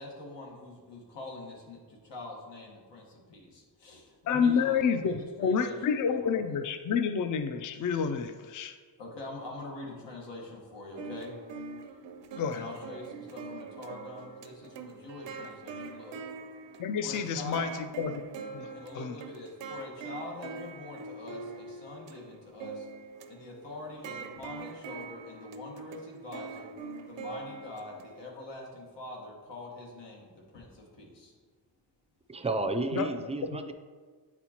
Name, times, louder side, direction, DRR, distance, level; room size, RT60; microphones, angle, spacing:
voice 1, 0.0-5.8 6.0-6.3 9.0-11.4 12.5-16.2 17.0-17.7 18.7-22.9 23.3-26.7 27.1-31.3, left 2 dB, 90° left, -2 dB, 1.4 m, -44 dB
voice 2, 4.3-8.8 12.4-12.6 16.8-17.7 18.0-18.1 18.5-18.7 18.9-19.1 32.9-33.1, left 6 dB, 50° left, 8 dB, 0.4 m, -29 dB
sound 1, 11.0-28.3, right 4 dB, 85° right, 0.6 m, -44 dB
voice 3, 32.3-33.7, right 2 dB, 15° right, 7 dB, 0.3 m, -31 dB
8.8 x 4.3 x 2.9 m, 1.5 s
wide cardioid pair, 105°, 42 cm